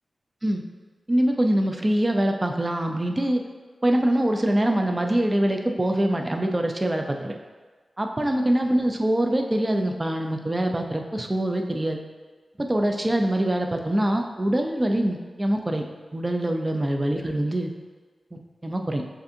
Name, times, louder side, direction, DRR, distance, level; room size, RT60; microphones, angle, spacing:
voice 1, 1.1-3.4 3.8-7.3 8.0-12.0 12.6-15.9 16.1-17.7 18.3-19.0, right 1 dB, 30° right, 4 dB, 0.4 m, -24 dB
6.9 x 2.6 x 2.6 m, 1.4 s
cardioid pair, 50°, 0 cm